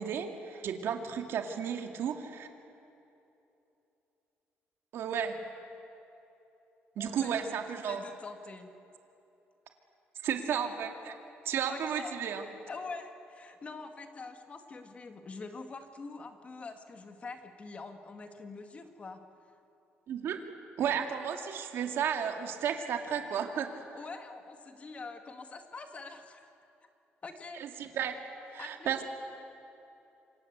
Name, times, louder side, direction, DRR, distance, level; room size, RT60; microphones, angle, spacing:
voice 1, 0.0-2.5 4.9-5.4 7.0-8.0 10.2-11.2 11.4-12.4 20.1-20.4 20.8-23.7 27.6-28.1 28.5-29.0, right 8 dB, 70° right, 4 dB, 2.4 m, -33 dB
voice 2, 7.0-7.5 7.9-8.7 11.7-12.2 12.7-19.2 23.9-26.5 27.2-27.6 28.6-29.0, left 3 dB, 30° left, 6 dB, 2.1 m, -45 dB
28.0 x 25.5 x 8.1 m, 2.9 s
cardioid pair, 135°, 4 cm